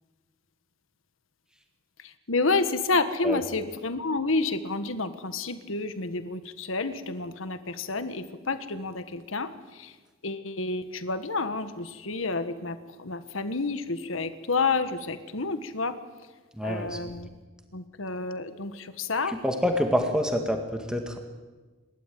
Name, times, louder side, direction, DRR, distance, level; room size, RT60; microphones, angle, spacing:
voice 1, 2.0-9.9 10.2-16.0 16.6-17.4 17.7-19.4, left 3 dB, 80° left, 11 dB, 1.5 m, -30 dB
voice 2, 16.6-17.0 19.4-21.2, equal, 5° right, 4 dB, 1.9 m, -26 dB
28.0 x 12.5 x 9.3 m, 1.3 s
head